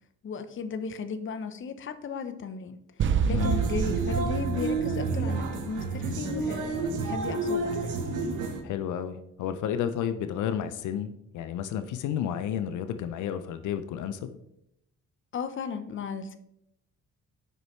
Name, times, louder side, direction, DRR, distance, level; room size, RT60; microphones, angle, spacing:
voice 1, 0.2-2.8 3.2-8.0 15.3-16.4, left 5 dB, 40° left, 9 dB, 0.7 m, -35 dB
sound 1, 3.0-6.0, right 7 dB, 40° right, 0.4 m, -28 dB
voice 2, 3.3-3.6 8.6-14.4, left 9 dB, 80° left, 10 dB, 0.5 m, -31 dB
sound 2, 3.4-8.6, right 3 dB, 80° right, 1.1 m, -30 dB
8.0 x 5.4 x 3.1 m, 0.80 s
cardioid pair, 90°, 30 cm